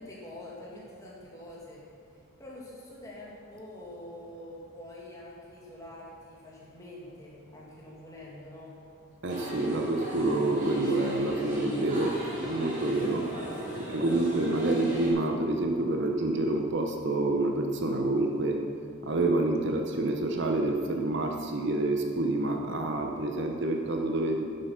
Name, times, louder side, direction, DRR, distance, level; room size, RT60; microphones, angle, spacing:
voice 1, 0.0-1.8 2.1-8.7, left 1 dB, 15° left, -5 dB, 2.1 m, -46 dB
voice 2, 9.2-12.2 12.4-13.3 13.9-18.6 19.0-24.5, right 2 dB, 50° right, 3 dB, 0.8 m, -28 dB
sound 1, 9.3-15.1, right 1 dB, 35° right, 3.1 m, -36 dB
10.5 x 7.9 x 5.7 m, 2.3 s
head